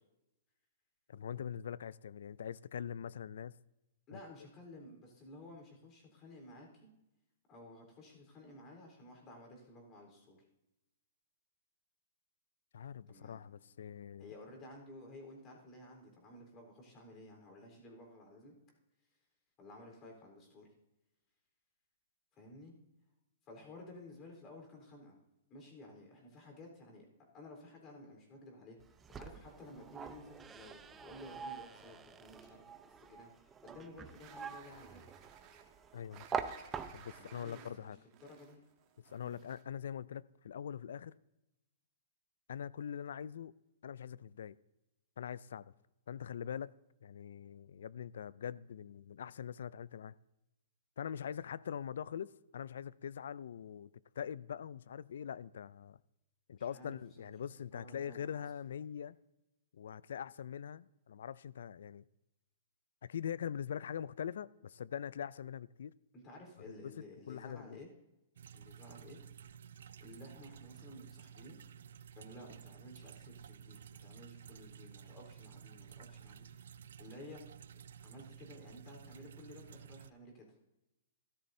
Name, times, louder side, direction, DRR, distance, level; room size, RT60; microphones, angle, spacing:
voice 1, 1.1-3.6 4.1-4.2 12.7-14.4 35.9-36.4 36.9-38.0 39.0-41.2 42.5-43.5 43.8-44.6 45.2-45.7 46.1-46.7 47.0-50.2 51.0-56.0 56.5-59.2 59.7-62.0 63.0-65.9 67.0-67.8, left 8 dB, 75° left, 0.3 m, -43 dB
voice 2, 4.1-6.9 7.5-10.4 13.1-13.6 14.2-18.5 19.6-20.7 22.3-22.7 23.5-25.2 25.5-28.8 29.1-35.1 37.2-38.6 39.2-39.4 56.6-57.3 57.7-58.4 66.1-67.9 68.5-69.2 70.0-71.6 72.1-76.7 77.0-77.4 77.7-80.6, left 1 dB, 30° left, 3.8 m, -54 dB
sound 1, 28.8-37.3, right 6 dB, 15° right, 0.6 m, -45 dB
sound 2, 34.1-39.8, right 8 dB, 35° right, 1.4 m, -59 dB
sound 3, 68.4-80.1, right 8 dB, 75° right, 0.4 m, -53 dB
13.5 x 12.5 x 2.7 m
hypercardioid pair, 145°, 0 cm